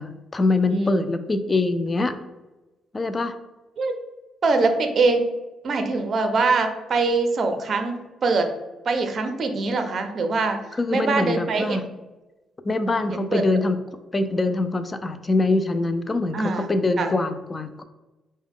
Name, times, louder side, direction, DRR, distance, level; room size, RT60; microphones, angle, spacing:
voice 1, 0.0-2.2 2.9-3.3 10.8-11.9 12.6-13.8 14.1-17.8, left 2 dB, 25° left, 9 dB, 0.3 m, -24 dB
voice 2, 0.7-1.1 3.8-3.9 4.4-5.2 5.6-8.5 8.9-10.6 10.9-11.9 13.1-13.4 16.3-16.7 17.0-17.1, right 3 dB, 50° right, 6 dB, 0.5 m, -23 dB
4.6 x 2.1 x 3.6 m, 1.1 s
cardioid pair, 90°, 0 cm